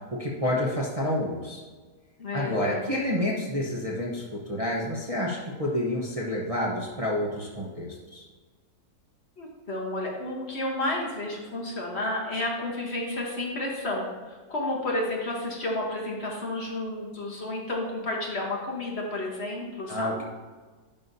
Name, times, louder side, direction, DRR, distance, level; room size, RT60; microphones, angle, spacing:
voice 1, 0.1-1.6 2.3-8.2 19.9-20.2, left 1 dB, 25° right, -4 dB, 0.9 m, -29 dB
voice 2, 2.2-2.8 9.4-20.2, left 1 dB, 45° left, -2 dB, 1.5 m, -31 dB
11.0 x 5.6 x 2.7 m, 1.4 s
omnidirectional pair, 1.7 m